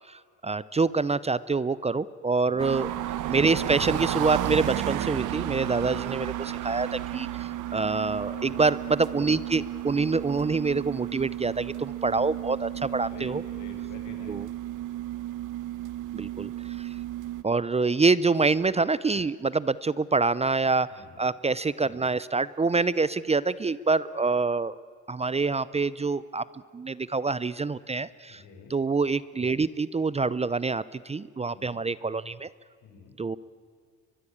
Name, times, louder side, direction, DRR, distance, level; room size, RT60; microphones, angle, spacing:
voice 1, 0.1-2.9 3.3-13.4 14.3-14.5 16.1-16.9 17.4-20.9 21.2-24.7 25.1-28.4 28.7-32.5 33.2-33.4, right 4 dB, 20° right, 18 dB, 0.6 m, -26 dB
sound 1, 2.6-17.4, right 13 dB, 85° right, 1.2 m, -33 dB
voice 2, 8.2-8.7 13.1-14.4 20.9-21.2 28.3-28.7 31.5-31.8 32.8-33.1, left 5 dB, 75° left, 5 dB, 5.3 m, -48 dB
23.0 x 21.5 x 8.7 m, 2.1 s
cardioid pair, 90°, 30 cm